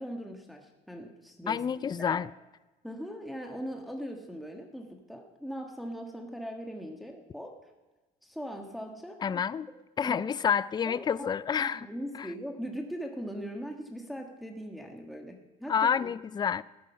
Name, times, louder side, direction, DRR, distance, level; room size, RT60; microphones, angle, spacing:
voice 1, 0.0-2.2 2.8-7.5 8.2-9.4 10.0-10.3 10.8-11.3 11.6-16.1, equal, ahead, 2 dB, 1.4 m, -40 dB
voice 2, 1.5-2.3 9.2-9.7 10.0-11.9 12.1-12.3 15.7-16.6, left 7 dB, 25° left, 19 dB, 0.4 m, -29 dB
14.0 x 10.0 x 5.5 m, 1.1 s
cardioid pair, 110°, 17 cm